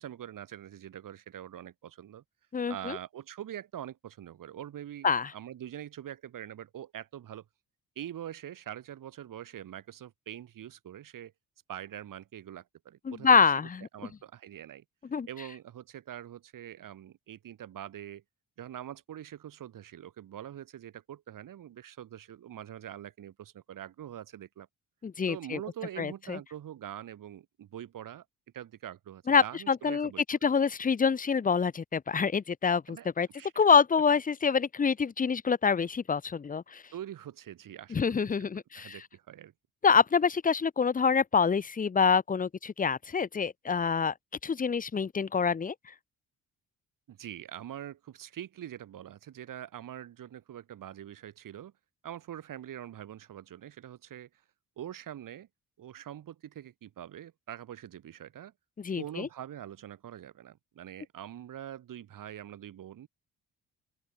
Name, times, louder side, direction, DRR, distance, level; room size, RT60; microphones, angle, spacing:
voice 1, 0.0-2.2 2.7-7.4 8.0-11.3 11.7-13.5 13.9-14.8 15.3-18.2 18.6-24.7 25.3-28.2 28.5-30.2 32.9-33.1 33.3-33.6 36.9-38.3 38.7-39.5 47.1-51.7 52.0-54.3 54.8-55.5 55.8-58.5 59.0-63.1, right 11 dB, 70° right, 4.3 m, -44 dB
voice 2, 2.5-3.0 5.0-5.3 13.1-13.9 15.1-15.3 25.0-25.6 26.0-26.4 29.3-33.3 33.6-36.8 37.9-39.0 39.8-44.1 44.4-45.7 58.8-59.3, left 6 dB, 25° left, 0.7 m, -26 dB
open air
cardioid pair, 80°, 34 cm